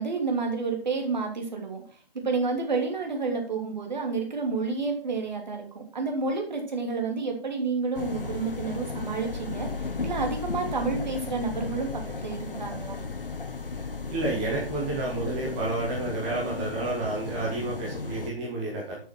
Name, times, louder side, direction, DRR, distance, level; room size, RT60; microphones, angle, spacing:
voice 1, 0.0-1.8 2.1-13.0, right 4 dB, 50° right, 2 dB, 3.1 m, -30 dB
sound 1, 7.9-18.3, left 4 dB, 65° left, 1.3 m, -35 dB
voice 2, 14.1-18.9, right 2 dB, 5° right, -4 dB, 0.7 m, -30 dB
8.4 x 6.6 x 6.2 m, 0.44 s
figure-of-eight pair, 150°, 29 cm